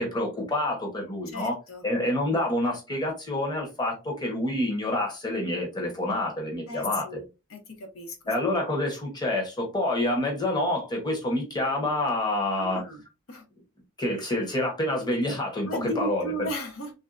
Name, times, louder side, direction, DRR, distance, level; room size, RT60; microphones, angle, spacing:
voice 1, 0.0-1.6 1.8-7.2 8.3-12.8 14.0-15.7 16.0-16.5, left 1 dB, 20° left, 0.9 m, -27 dB
voice 2, 1.3-1.8 6.7-7.2 7.5-8.2 12.6-13.0 13.3-13.5 15.7-16.9, equal, 70° left, 0.8 m, -34 dB
3.2 x 2.6 x 2.4 m
head